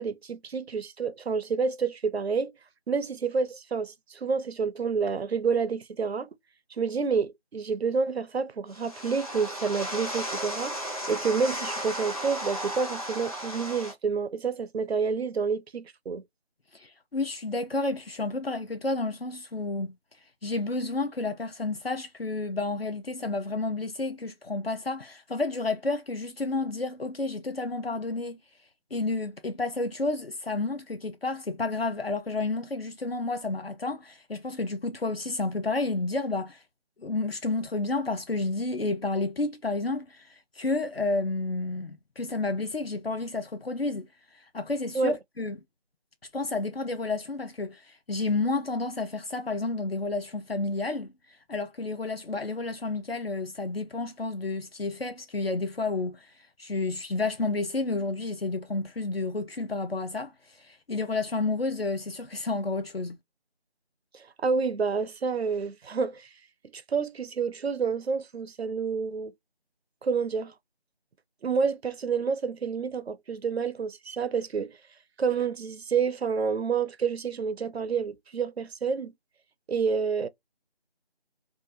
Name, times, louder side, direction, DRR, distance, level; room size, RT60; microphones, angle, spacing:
voice 1, 0.0-2.5 2.9-6.3 6.8-10.8 11.1-16.2 44.9-45.2 64.1-66.3 66.7-69.3 70.0-70.5 71.4-74.8 75.2-79.1 79.7-80.3, right 5 dB, 75° right, 0.5 m, -29 dB
sound 1, 8.7-13.9, equal, 35° left, 0.8 m, -35 dB
voice 2, 16.7-19.9 20.4-28.4 28.9-36.6 37.0-44.1 44.5-45.6 46.3-51.1 51.5-56.3 56.6-60.3 60.6-63.2, left 3 dB, 70° left, 0.6 m, -30 dB
2.8 x 2.3 x 2.5 m
figure-of-eight pair, 170°, 32 cm